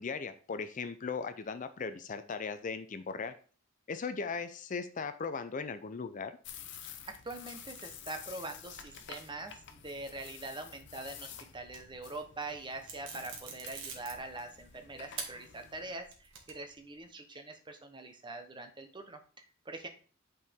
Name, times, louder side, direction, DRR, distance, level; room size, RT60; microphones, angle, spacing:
voice 1, 0.0-3.3 3.9-6.3, left 5 dB, 40° left, 11 dB, 0.5 m, -38 dB
sound 1, 6.4-16.0, left 8 dB, 60° left, 0.8 m, -50 dB
voice 2, 7.2-19.9, right 2 dB, 25° right, 6 dB, 0.9 m, -44 dB
sound 2, 11.6-12.2 12.8-14.7 15.1-15.3 15.8-16.8, right 6 dB, 65° right, 1.6 m, -44 dB
8.6 x 4.6 x 3.6 m, 0.40 s
head